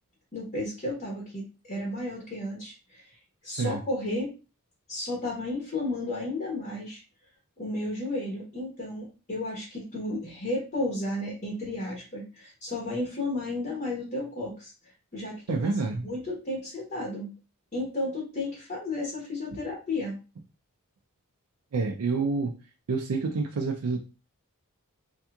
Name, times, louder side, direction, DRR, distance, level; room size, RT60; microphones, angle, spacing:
voice 1, 0.3-3.2 3.4-4.3 4.9-7.0 7.6-14.7 15.1-15.7 16.0-17.3 17.7-20.2, left 2 dB, 35° left, -3 dB, 1.1 m, -33 dB
voice 2, 15.5-16.1 21.7-22.5 22.9-24.0, right 4 dB, 85° right, 1 dB, 0.5 m, -28 dB
3.3 x 2.9 x 2.3 m, 0.31 s
head